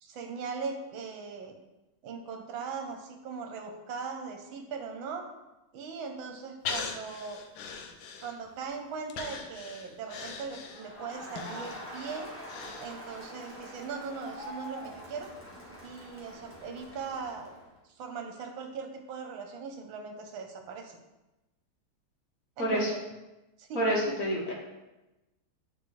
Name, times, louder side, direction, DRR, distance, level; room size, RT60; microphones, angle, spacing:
voice 1, 0.0-1.5 2.0-5.3 5.7-7.4 8.2-12.3 12.8-15.3 15.8-17.5 17.9-21.0 22.6-23.0 23.6-23.8, right 5 dB, 70° right, 3 dB, 1.6 m, -39 dB
Breathing, 6.6-8.6 9.1-13.3 13.7-13.8, left 5 dB, 70° left, 1.3 m, -40 dB
Crowd, 10.7-17.7, equal, 10° left, 1.0 m, -45 dB
voice 2, 22.6-22.9 23.7-24.5, equal, 45° left, -2 dB, 1.5 m, -28 dB
8.7 x 3.8 x 3.2 m, 1.0 s
omnidirectional pair, 2.3 m